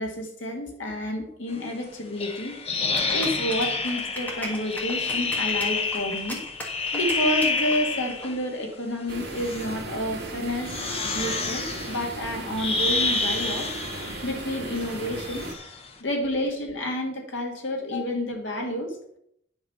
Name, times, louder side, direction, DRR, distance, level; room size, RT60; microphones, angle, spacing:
voice 1, 0.0-2.6 2.8-6.4 6.9-10.7 11.0-13.7 14.2-15.5 16.0-19.0, equal, 80° left, 2 dB, 2.0 m, -30 dB
sound 1, 2.2-8.4 9.2-9.8 10.5-15.9, left 3 dB, 30° left, 0.9 m, -29 dB
sound 2, 2.9-8.3, right 1 dB, 10° left, 1.6 m, -38 dB
sound 3, 9.1-15.5, right 2 dB, 60° right, 1.9 m, -37 dB
10.0 x 5.1 x 5.7 m, 0.73 s
head